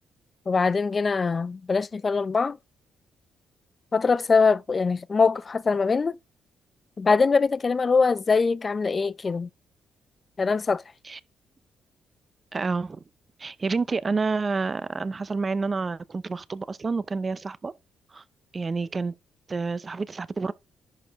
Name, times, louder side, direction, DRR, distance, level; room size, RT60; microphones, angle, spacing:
voice 1, 0.5-2.6 3.9-6.2 7.0-9.5 10.4-10.8, left 4 dB, 35° left, 0.5 m, -23 dB
voice 2, 12.5-13.0 13.4-17.7 18.1-18.2 18.5-19.1 19.5-20.5, right 4 dB, 30° right, 0.6 m, -29 dB
11.0 x 4.4 x 3.6 m
cardioid pair, 90°, 0 cm